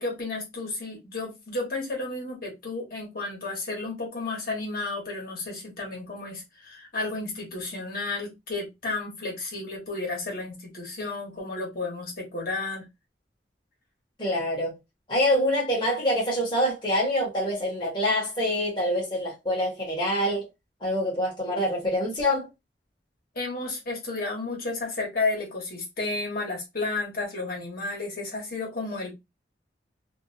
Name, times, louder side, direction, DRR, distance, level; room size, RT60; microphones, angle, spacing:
voice 1, 0.0-12.9 23.3-29.1, left 3 dB, 55° left, 1.2 m, -32 dB
voice 2, 14.2-14.8 15.1-20.5 20.8-22.5, equal, 25° left, 1.1 m, -25 dB
2.6 x 2.3 x 2.7 m
head